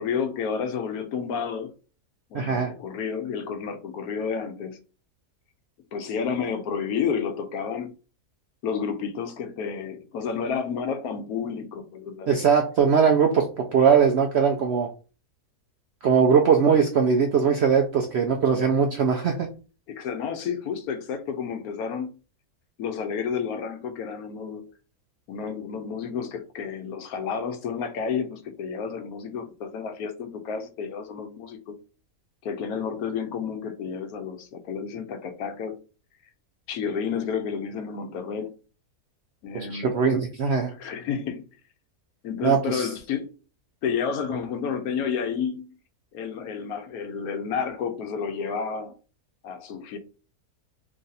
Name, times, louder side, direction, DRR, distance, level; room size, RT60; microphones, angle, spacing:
voice 1, 0.0-1.8 2.3-4.8 5.9-7.9 8.6-12.3 19.9-22.1 22.8-24.7 25.3-31.7 32.4-35.8 36.7-38.5 39.4-40.0 40.8-41.4 42.2-43.3 43.8-45.7 46.1-49.0 49.4-50.0, left 6 dB, 75° left, 1.1 m, -30 dB
voice 2, 2.3-2.7 12.3-14.9 16.0-19.5 39.5-40.7 42.4-42.9, right 6 dB, 75° right, 0.6 m, -21 dB
3.2 x 2.6 x 3.9 m
omnidirectional pair, 1.6 m